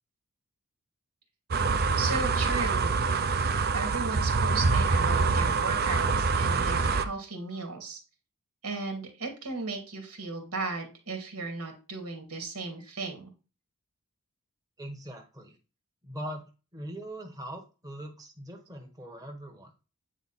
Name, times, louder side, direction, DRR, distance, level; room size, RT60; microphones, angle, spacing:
sound 1, 1.5-7.1, right 4 dB, 45° right, 0.7 m, -25 dB
voice 1, 2.0-2.9 3.7-8.0 8.6-13.3, right 3 dB, 90° right, 3 dB, 2.5 m, -35 dB
voice 2, 14.8-15.6 16.0-16.4 16.7-19.7, right 1 dB, 15° right, 1 dB, 1.3 m, -41 dB
9.1 x 4.1 x 4.2 m, 0.32 s
head